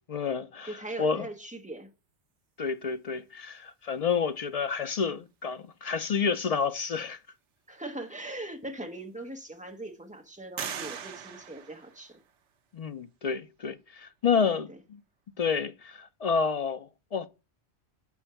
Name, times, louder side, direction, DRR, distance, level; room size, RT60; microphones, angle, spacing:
voice 1, 0.1-1.3 2.6-7.2 12.7-15.0 15.4-17.3, left 6 dB, 60° left, 0.4 m, -29 dB
voice 2, 0.7-1.9 7.7-12.2 14.3-14.8, right 1 dB, 5° right, 1.0 m, -40 dB
sound 1, 8.3-8.4 9.0-9.6 10.6-12.5, right 7 dB, 85° right, 1.1 m, -40 dB
7.1 x 4.3 x 5.7 m
omnidirectional pair, 1.2 m